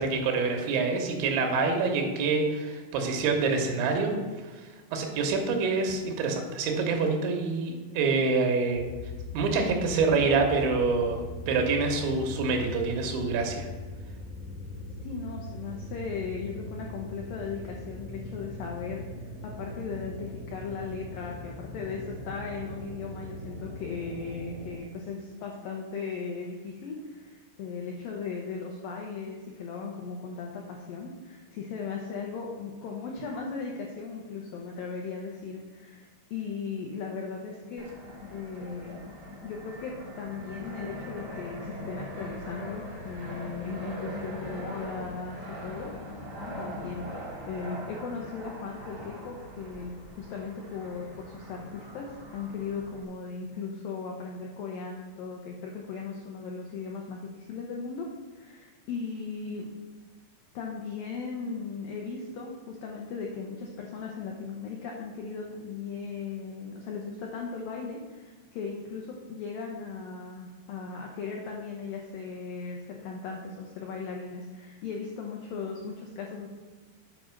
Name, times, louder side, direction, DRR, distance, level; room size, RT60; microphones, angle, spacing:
voice 1, 0.0-4.1 4.9-8.8 9.3-11.2 11.5-13.7, right 4 dB, 85° right, 3 dB, 3.5 m, -26 dB
sound 1, 8.7-24.8, left 1 dB, 25° left, 0.9 m, -40 dB
voice 2, 15.0-19.0 19.4-37.8 38.3-45.9 46.6-58.1 58.3-59.7 60.5-76.5, left 5 dB, 90° left, -1 dB, 2.0 m, -37 dB
Fixed-wing aircraft airplane, 37.8-53.0, left 1 dB, 60° right, 0.6 m, -41 dB
8.7 x 5.1 x 6.0 m, 1.3 s
omnidirectional pair, 5.2 m